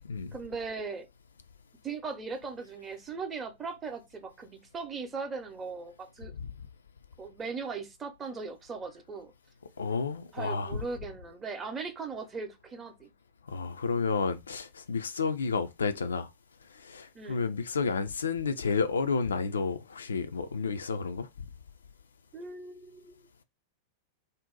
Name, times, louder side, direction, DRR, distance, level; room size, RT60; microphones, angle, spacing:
voice 1, 0.3-1.1 1.8-6.3 7.2-9.3 10.3-13.1 17.1-17.4 22.3-23.4, right 4 dB, 20° right, 0.7 m, -39 dB
voice 2, 9.8-10.8 13.5-16.3 16.7-21.5, left 5 dB, 70° left, 0.3 m, -31 dB
2.6 x 2.0 x 3.8 m
figure-of-eight pair, 90°, 0 cm